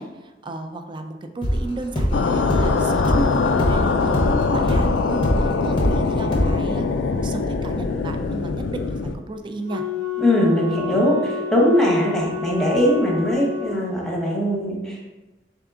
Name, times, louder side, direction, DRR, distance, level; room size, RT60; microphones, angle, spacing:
voice 1, 0.0-6.9 7.2-9.8, right 2 dB, 25° right, 6 dB, 0.3 m, -34 dB
sound 1, 1.4-6.0 6.3-6.5, equal, 30° left, 0.6 m, -23 dB
sound 2, 2.1-9.2, left 4 dB, 75° left, 0.3 m, -22 dB
Wind instrument woodwind instrument, 9.7-14.0, left 6 dB, 60° right, 0.9 m, -30 dB
voice 2, 10.2-15.1, equal, ahead, -3 dB, 0.9 m, -20 dB
3.6 x 3.5 x 3.5 m, 1.1 s
head